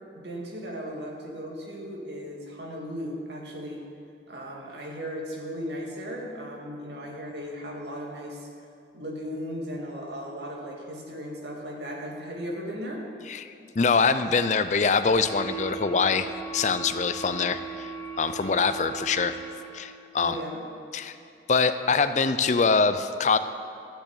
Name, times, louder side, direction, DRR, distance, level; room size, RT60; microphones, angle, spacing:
voice 1, 0.2-3.8 4.3-8.5 8.9-13.0 20.2-20.6, equal, 80° right, -1 dB, 2.2 m, -36 dB
voice 2, 13.3-17.9 18.2-19.4 19.7-20.4 20.9-21.1 21.5-23.4, left 4 dB, 45° left, 11 dB, 0.4 m, -24 dB
sound 1, 15.0-19.9, right 5 dB, 45° right, 2.1 m, -38 dB
13.5 x 6.4 x 8.3 m, 2.4 s
head